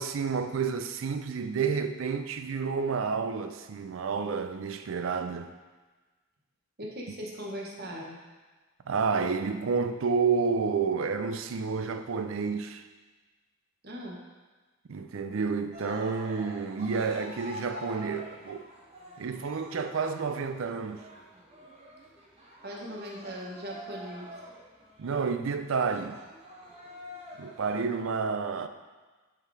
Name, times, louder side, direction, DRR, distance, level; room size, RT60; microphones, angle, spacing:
voice 1, 0.0-5.5 8.9-12.8 14.9-18.6 19.2-21.0 25.0-26.2 27.4-28.7, right 5 dB, 65° right, 9 dB, 0.4 m, -30 dB
voice 2, 6.8-8.2 13.8-14.2 22.6-24.3, equal, 50° right, -1 dB, 1.2 m, -39 dB
Cheering, 15.7-28.1, equal, 30° right, 1.0 m, -47 dB
6.5 x 4.7 x 4.9 m, 1.3 s
head